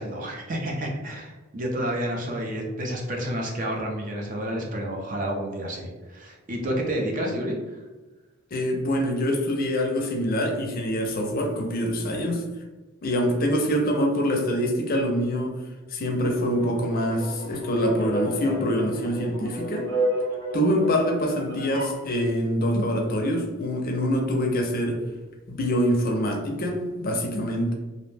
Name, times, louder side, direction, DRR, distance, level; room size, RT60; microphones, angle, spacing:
voice 1, 0.0-7.6, right 1 dB, 40° right, 0 dB, 0.5 m, -30 dB
voice 2, 8.5-12.4 13.0-15.5 15.9-19.9 20.5-25.0 25.5-27.7, equal, 45° left, 1 dB, 0.5 m, -25 dB
sound 1, 16.4-22.0, right 1 dB, 80° right, 0.9 m, -32 dB
2.6 x 2.0 x 3.2 m, 1.2 s
head